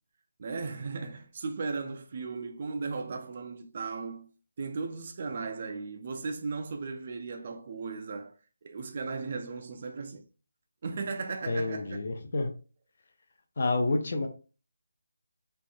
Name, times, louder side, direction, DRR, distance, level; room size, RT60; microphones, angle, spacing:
voice 1, 0.4-4.3 4.6-8.3 8.6-10.2 10.8-12.0, right 4 dB, 25° right, 0.3 m, -36 dB
voice 2, 11.5-12.5 13.6-14.3, left 2 dB, 35° left, 0.5 m, -29 dB
3.4 x 3.0 x 2.6 m
hypercardioid pair, 180°, 0 cm